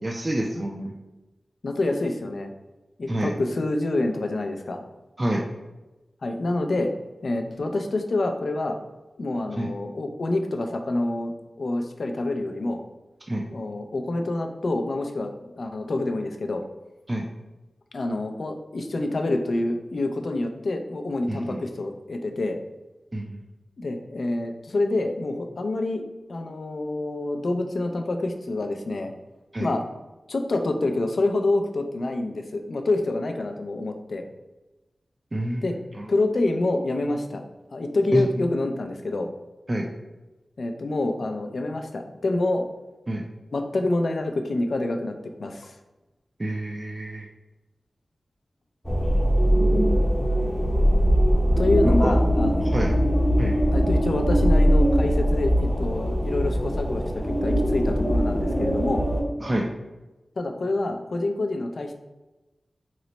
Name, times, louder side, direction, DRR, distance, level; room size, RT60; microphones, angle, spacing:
voice 1, 0.0-0.9 3.1-3.3 5.2-5.4 9.6-9.7 13.3-13.4 17.1-17.3 21.3-21.6 23.1-23.4 29.5-29.7 35.3-35.6 35.9-36.1 38.1-38.3 39.7-39.9 43.1-43.2 46.4-47.3 48.9-49.5 51.8-52.2 52.6-52.9 53.4-53.6 59.4-59.7, right 1 dB, 35° right, 0 dB, 0.4 m, -28 dB
voice 2, 1.6-2.5 3.0-4.8 6.2-6.9 7.2-8.8 9.2-12.8 13.5-16.6 17.9-22.6 23.8-26.0 26.3-29.1 29.6-29.8 30.3-34.2 35.6-35.8 36.1-37.4 37.7-39.3 40.6-42.7 43.5-45.8 51.6-52.7 53.7-59.0 60.4-61.9, left 2 dB, 75° left, 5 dB, 0.3 m, -27 dB
sound 1, 48.8-59.2, equal, 15° left, 0.6 m, -21 dB
3.0 x 2.1 x 3.9 m, 1.1 s
cardioid pair, 45°, 0 cm